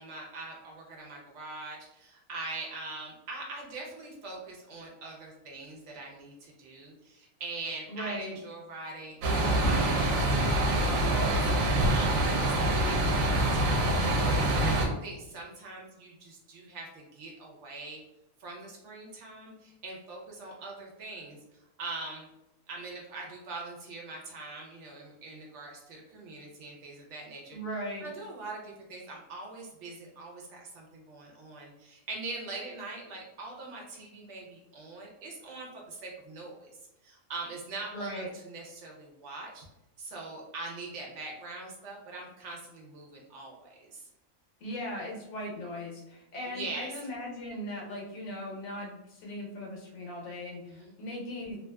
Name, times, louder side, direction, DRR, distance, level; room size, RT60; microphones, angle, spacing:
voice 1, 0.0-11.4 11.9-18.0 18.4-21.4 21.8-22.3 22.7-27.6 28.0-36.7 37.0-39.6 40.0-44.1 46.5-46.9 50.7-50.9, right 3 dB, 65° right, -1 dB, 1.0 m, -42 dB
voice 2, 7.9-8.3 27.5-28.0 37.9-38.3 44.6-51.6, left 1 dB, 85° left, -2 dB, 1.3 m, -38 dB
sound 1, 9.2-14.9, right 1 dB, 90° right, 1.0 m, -25 dB
2.9 x 2.4 x 2.2 m, 0.92 s
omnidirectional pair, 1.4 m